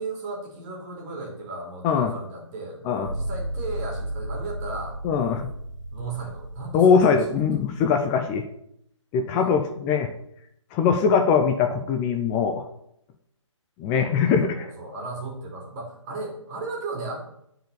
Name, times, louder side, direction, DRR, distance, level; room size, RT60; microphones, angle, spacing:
voice 1, 0.0-5.0 5.3-5.4 5.9-7.4 9.3-9.5 14.2-17.2, right 3 dB, 25° right, -1 dB, 3.1 m, -35 dB
sound 1, 3.0-8.4, right 1 dB, 70° right, 2.0 m, -34 dB
voice 2, 5.0-5.4 6.7-8.4 9.1-10.1 10.7-12.6 13.8-14.6, left 6 dB, 15° left, 6 dB, 0.5 m, -21 dB
10.0 x 4.8 x 7.0 m, 0.74 s
figure-of-eight pair, 140°, 16 cm